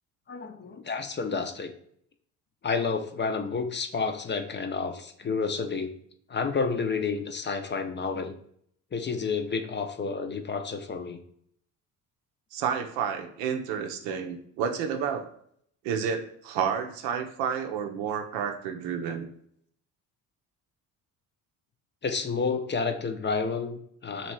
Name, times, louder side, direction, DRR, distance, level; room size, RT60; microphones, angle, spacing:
voice 1, 0.3-1.7 2.6-5.9 6.3-8.3 8.9-11.2 22.0-24.3, left 5 dB, 25° left, 7 dB, 0.5 m, -30 dB
voice 2, 12.5-15.3 15.8-19.3, right 7 dB, 80° right, 6 dB, 0.6 m, -30 dB
3.0 x 2.8 x 4.3 m, 0.67 s
hypercardioid pair, 60°, 42 cm